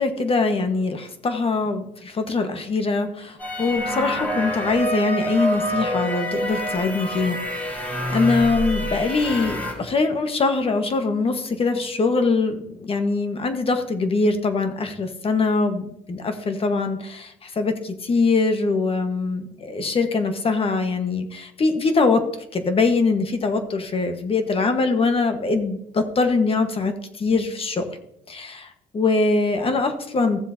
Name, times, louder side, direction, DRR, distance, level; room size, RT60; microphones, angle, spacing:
voice 1, 0.0-22.2 22.5-27.8 28.3-30.4, left 3 dB, 35° left, 7 dB, 1.3 m, -23 dB
sound 1, 3.4-9.7, equal, 10° left, 4.0 m, -27 dB
15.5 x 7.3 x 2.8 m, 0.78 s
cardioid pair, 110°, 17 cm